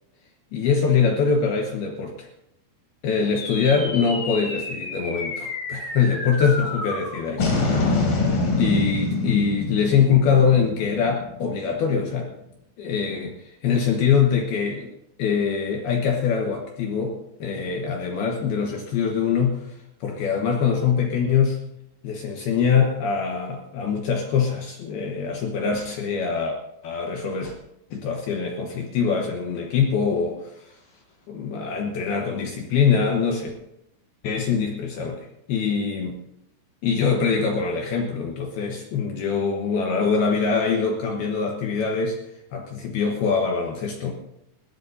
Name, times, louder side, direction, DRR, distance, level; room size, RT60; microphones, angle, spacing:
voice 1, 0.5-2.3 3.0-8.0 8.6-12.3 12.8-14.9 15.2-21.6 22.0-26.6 26.8-27.5 27.9-30.8 31.3-33.5 34.2-36.2 36.8-42.2 42.5-44.1, left 6 dB, 70° left, 1 dB, 2.5 m, -23 dB
sound 1, 3.4-11.9, left 3 dB, 45° left, 4.3 m, -27 dB
21.0 x 15.5 x 2.7 m, 0.84 s
omnidirectional pair, 5.9 m